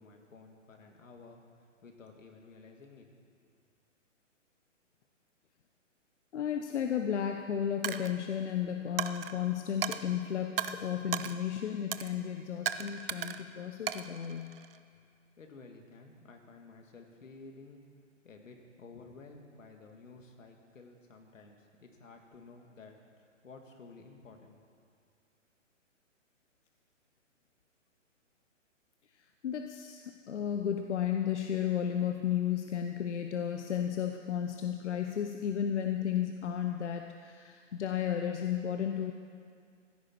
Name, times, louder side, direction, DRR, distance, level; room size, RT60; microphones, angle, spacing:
voice 1, 0.0-3.1 15.4-17.8 18.2-24.8, left 3 dB, 85° left, 3 dB, 2.4 m, -53 dB
voice 2, 6.3-14.6 29.4-39.1, left 9 dB, 65° left, 5 dB, 1.0 m, -33 dB
Coin (dropping), 7.8-8.1 9.0-9.3 9.8-10.0 10.6-10.7 11.1-11.3 11.9-12.1 12.7-13.4 13.9-14.8, right 9 dB, 50° right, 0.6 m, -35 dB
15.5 x 13.0 x 4.6 m, 2.3 s
hypercardioid pair, 160°, 38 cm